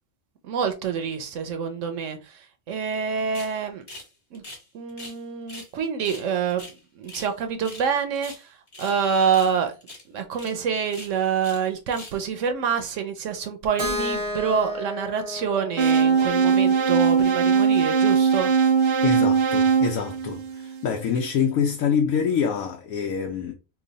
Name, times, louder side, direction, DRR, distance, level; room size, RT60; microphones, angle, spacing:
voice 1, 0.4-3.8 4.3-4.4 4.7-6.7 6.9-9.8 10.1-18.5, right 6 dB, 70° right, 0.9 m, -27 dB
sound 1, 3.3-3.5 3.9-4.1 4.3-5.2 5.5-5.7 6.0-7.3 7.6-7.9 8.1-9.0 9.3-9.6 9.8-10.0 10.3-10.5 10.9-11.6 11.9-12.2, left 1 dB, 25° left, 1.1 m, -42 dB
Keyboard (musical), 13.8-17.7, left 1 dB, 20° right, 0.6 m, -33 dB
sound 2, 15.8-20.9, right 6 dB, 90° right, 0.4 m, -20 dB
voice 2, 19.0-23.5, left 7 dB, 80° left, 1.0 m, -25 dB
3.0 x 2.2 x 3.8 m
omnidirectional pair, 1.5 m